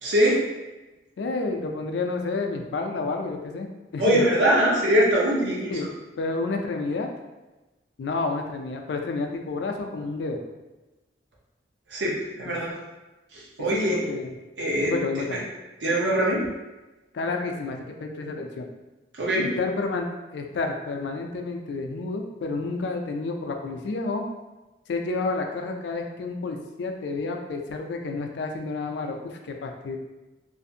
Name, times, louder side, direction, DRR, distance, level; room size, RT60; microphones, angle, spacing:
voice 1, 0.0-0.4 4.0-5.7 11.9-12.7 13.3-14.0 14.6-15.0 15.3-15.4 15.8-16.5 19.1-19.5, equal, 75° right, -3 dB, 0.7 m, -22 dB
voice 2, 1.2-4.3 5.7-5.9 6.2-7.1 8.0-10.4 12.5-12.6 13.6-14.3 14.8-15.4 17.1-18.7 19.4-20.1 20.3-24.2 24.9-30.0, left 3 dB, 65° left, 4 dB, 0.3 m, -30 dB
2.5 x 2.4 x 2.6 m, 1.1 s
head